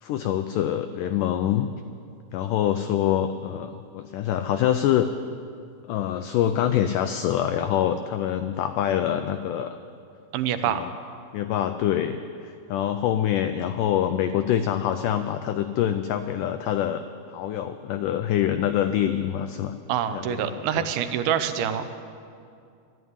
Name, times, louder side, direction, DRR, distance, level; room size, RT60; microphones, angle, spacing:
voice 1, 0.0-1.7 2.3-5.1 5.9-9.8 10.7-10.9 11.3-17.0 17.3-19.7 20.1-20.9, left 10 dB, 85° left, 9 dB, 1.8 m, -25 dB
voice 2, 10.3-10.8 19.9-21.9, right 9 dB, 80° right, 10 dB, 2.6 m, -26 dB
13.0 x 11.0 x 9.5 m, 2.4 s
omnidirectional pair, 4.3 m